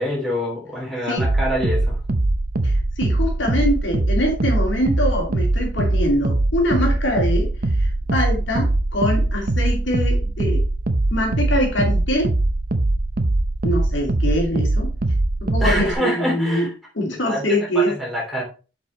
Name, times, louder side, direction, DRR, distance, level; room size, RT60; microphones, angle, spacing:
voice 1, 0.0-2.0 15.6-16.7 17.2-17.4 17.7-18.4, equal, ahead, -5 dB, 3.4 m, -25 dB
sound 1, 1.2-15.9, right 2 dB, 50° right, 0.8 m, -21 dB
voice 2, 2.6-7.5 7.8-10.6 11.1-12.3 13.6-14.9 15.4-16.7 17.0-17.9, equal, 70° left, 0 dB, 2.6 m, -23 dB
6.9 x 5.3 x 4.2 m, 0.34 s
head